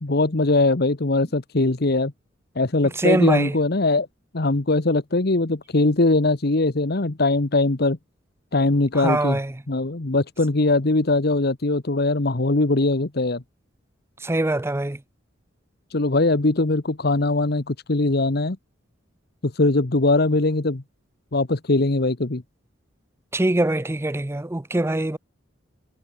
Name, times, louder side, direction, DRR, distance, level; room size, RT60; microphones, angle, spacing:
voice 1, 0.0-2.1 2.5-4.1 4.3-8.0 8.5-9.4 9.7-13.4 15.9-18.6 19.4-20.8 21.3-22.4, left 2 dB, 55° left, 1.2 m, -21 dB
voice 2, 3.0-3.6 8.9-9.6 14.2-15.0 23.3-25.2, right 1 dB, 15° right, 0.5 m, -23 dB
head